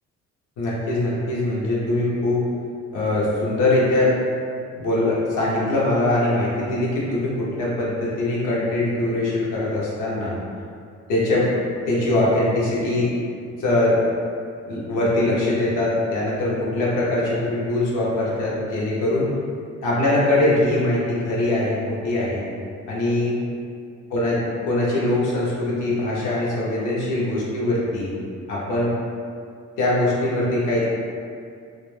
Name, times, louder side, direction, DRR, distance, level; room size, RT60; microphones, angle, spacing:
voice 1, 0.6-2.4 2.9-4.1 4.7-10.3 11.1-11.5 11.9-13.1 13.6-14.0 14.6-19.3 19.8-22.4 22.9-23.4 24.1-28.1 28.5-28.9 29.8-30.9, left 1 dB, 85° left, -6 dB, 0.8 m, -22 dB
2.3 x 2.0 x 3.1 m, 2.3 s
cardioid pair, 90°, 30 cm